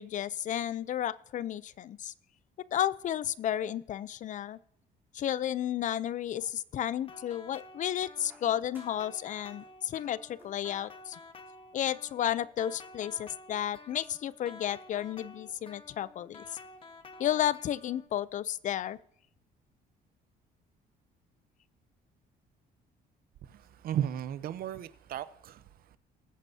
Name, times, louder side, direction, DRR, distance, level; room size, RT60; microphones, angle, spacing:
voice 1, 0.0-2.1 2.7-4.6 5.1-11.2 11.7-16.4 17.2-19.0, left 11 dB, 50° left, 0.5 m, -32 dB
sound 1, 6.0-7.0 7.8-9.2 9.4-10.7 11.8-11.9, right 2 dB, 10° right, 3.3 m, -63 dB
sound 2, 7.0-18.1, left 3 dB, 30° left, 1.3 m, -51 dB
voice 2, 23.4-26.0, right 10 dB, 60° right, 0.7 m, -36 dB
20.5 x 8.9 x 2.7 m
cardioid pair, 110°, 17 cm